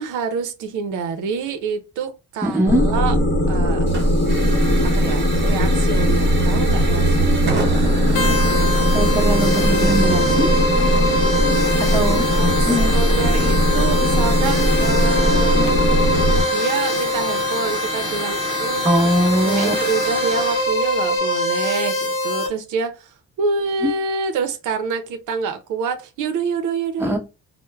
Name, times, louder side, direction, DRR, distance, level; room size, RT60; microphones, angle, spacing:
voice 1, 0.0-3.2 3.5-3.9 4.8-8.0 12.3-15.7 16.4-19.1 19.4-27.2, right 5 dB, 85° right, 0.5 m, -27 dB
voice 2, 2.4-2.8 8.9-10.5 11.9-12.9 18.8-19.7 23.8-23.9 27.0-27.2, right 1 dB, 10° right, 0.8 m, -21 dB
sound 1, 2.7-16.4, equal, 40° left, 0.8 m, -18 dB
Hiss / Fire, 3.9-21.2, right 3 dB, 35° right, 0.8 m, -31 dB
sound 2, 8.2-22.5, left 1 dB, 90° left, 0.8 m, -23 dB
3.0 x 2.0 x 2.2 m
cardioid pair, 90°, 30 cm